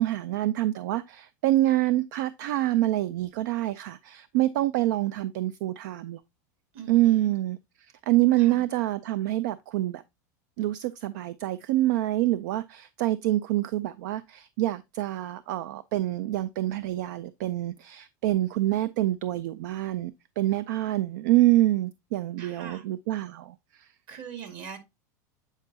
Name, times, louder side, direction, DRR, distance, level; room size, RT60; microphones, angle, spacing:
voice 1, 0.0-6.2 6.9-7.6 8.1-10.0 10.6-23.9, right 15 dB, 75° right, 0.4 m, -26 dB
voice 2, 6.7-7.3 8.4-8.6 22.4-22.8 24.1-24.8, right 7 dB, 55° right, 1.8 m, -42 dB
8.1 x 4.5 x 2.7 m
supercardioid pair, 115°, 10 cm